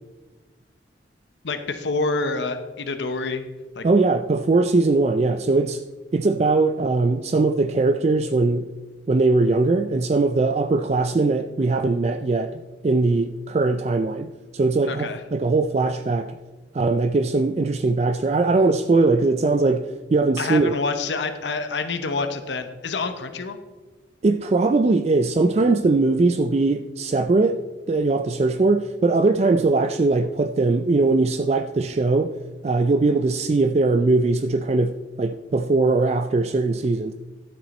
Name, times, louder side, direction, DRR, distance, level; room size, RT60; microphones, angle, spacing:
voice 1, 1.4-3.4 3.7-3.9 14.9-15.2 20.4-23.6, left 3 dB, 75° left, 0.8 m, -27 dB
voice 2, 3.8-5.8 6.1-8.7 9.1-16.4 16.7-20.8 24.2-27.6 27.9-32.3 32.6-37.1, right 3 dB, 35° right, 0.3 m, -20 dB
12.5 x 7.5 x 4.2 m
head